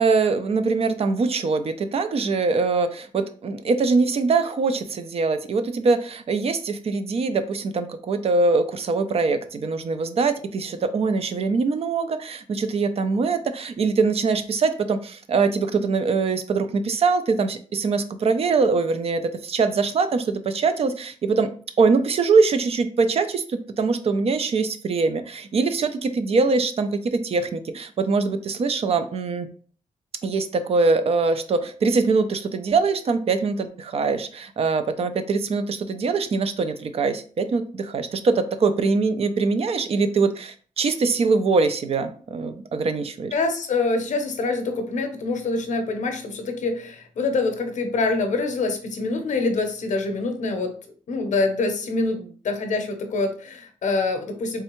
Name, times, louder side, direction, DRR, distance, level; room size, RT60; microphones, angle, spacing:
voice 1, 0.0-21.5 21.8-29.5 30.2-43.3, right 4 dB, 50° right, 10 dB, 0.4 m, -23 dB
voice 2, 43.3-50.7 51.1-54.6, left 3 dB, 70° left, 6 dB, 0.7 m, -25 dB
3.6 x 3.2 x 3.0 m, 0.43 s
wide cardioid pair, 160°, 13 cm